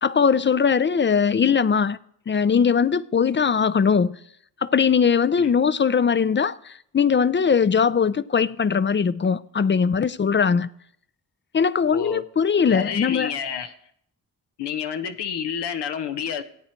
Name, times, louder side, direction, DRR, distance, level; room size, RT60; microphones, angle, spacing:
voice 1, 0.0-2.0 2.3-4.1 4.6-10.7 11.5-13.3, left 6 dB, 30° left, 0.4 m, -20 dB
voice 2, 11.9-12.2 12.7-13.7 14.6-16.4, left 8 dB, 85° left, 0.9 m, -29 dB
14.5 x 8.8 x 4.4 m
cardioid pair, 50°, 40 cm